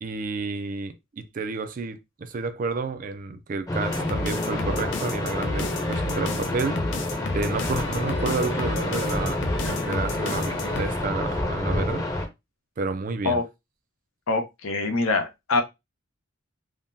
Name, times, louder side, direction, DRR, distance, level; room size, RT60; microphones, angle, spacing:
voice 1, 0.0-6.8 7.3-12.1 12.8-13.4, right 4 dB, 40° right, 0.4 m, -30 dB
sound 1, 3.7-12.3, left 1 dB, 15° left, 0.6 m, -28 dB
sound 2, 3.8-10.9, left 3 dB, 60° left, 0.5 m, -32 dB
voice 2, 14.3-15.6, left 3 dB, 85° left, 0.7 m, -24 dB
3.6 x 2.1 x 2.6 m
head